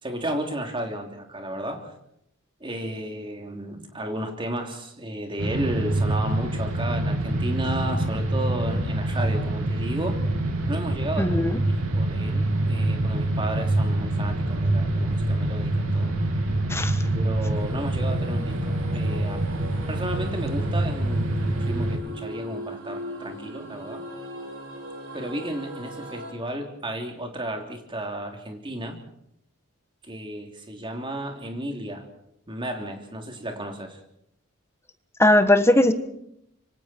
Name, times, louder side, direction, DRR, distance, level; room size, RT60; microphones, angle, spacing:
voice 1, 0.0-1.9 2.6-10.2 10.7-11.4 11.9-16.1 17.1-24.0 25.1-29.0 30.0-32.1 32.5-34.0, right 1 dB, 25° right, 3 dB, 3.2 m, -33 dB
sound 1, 5.4-22.0, right 1 dB, 90° right, 3.0 m, -25 dB
voice 2, 11.2-11.6 16.7-17.0 35.2-35.9, left 1 dB, 10° left, 9 dB, 1.3 m, -19 dB
sound 2, 17.5-26.3, equal, 70° right, 7.2 m, -39 dB
26.0 x 24.5 x 4.5 m, 0.76 s
head